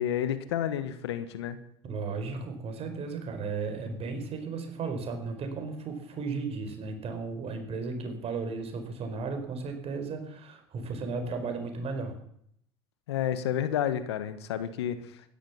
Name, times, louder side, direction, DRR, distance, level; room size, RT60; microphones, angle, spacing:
voice 1, 0.0-1.6 13.1-15.0, left 10 dB, 90° left, 11 dB, 1.4 m, -30 dB
voice 2, 1.8-12.2, right 4 dB, 50° right, 6 dB, 4.7 m, -35 dB
15.0 x 12.0 x 7.2 m, 0.71 s
hypercardioid pair, 80°, 14 cm